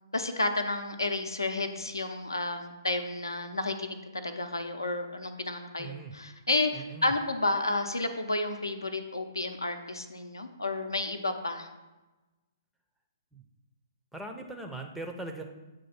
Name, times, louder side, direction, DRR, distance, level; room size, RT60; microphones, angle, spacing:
voice 1, 0.1-11.7, left 2 dB, 75° left, 6 dB, 0.6 m, -31 dB
voice 2, 5.8-6.1 6.7-7.1 13.3-13.4 14.1-15.4, right 2 dB, 5° right, 3 dB, 0.5 m, -40 dB
7.6 x 2.6 x 5.7 m, 1.1 s
figure-of-eight pair, 125°, 2 cm